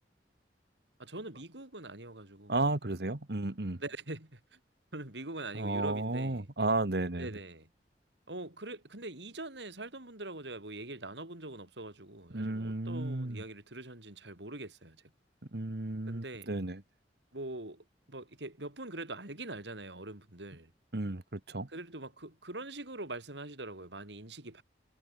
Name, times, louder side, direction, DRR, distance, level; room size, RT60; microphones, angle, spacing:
voice 1, 1.0-2.5 3.8-4.6 4.9-6.5 7.2-7.7 8.3-15.0 16.1-16.6 17.3-20.7 21.7-24.6, right 2 dB, 85° right, 4.8 m, -43 dB
voice 2, 2.5-3.8 5.5-7.3 12.3-13.4 15.5-16.8 20.9-21.7, right 2 dB, 65° right, 1.5 m, -33 dB
head